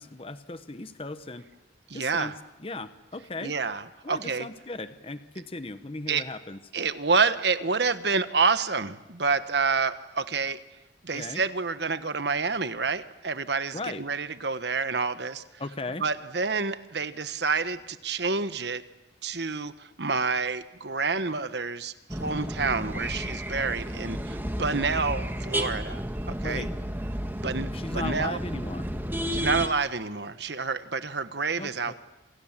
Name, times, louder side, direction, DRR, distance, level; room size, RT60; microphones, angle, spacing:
voice 1, 0.0-1.5 1.9-2.3 2.6-3.5 4.0-6.6 11.1-11.4 13.7-14.0 15.6-16.0 26.4-26.7 27.7-28.9 31.6-31.9, left 2 dB, 30° left, 11 dB, 0.9 m, -37 dB
voice 2, 1.9-2.3 3.4-4.5 6.1-6.2 6.7-10.6 11.0-15.4 16.0-18.8 19.2-26.0 26.3-26.7 27.4-27.7 27.9-28.4 29.3-31.9, right 4 dB, 65° right, 12 dB, 1.3 m, -28 dB
sound 1, 22.1-29.7, equal, 10° right, 1.6 m, -32 dB
27.5 x 27.0 x 7.5 m, 1.0 s
head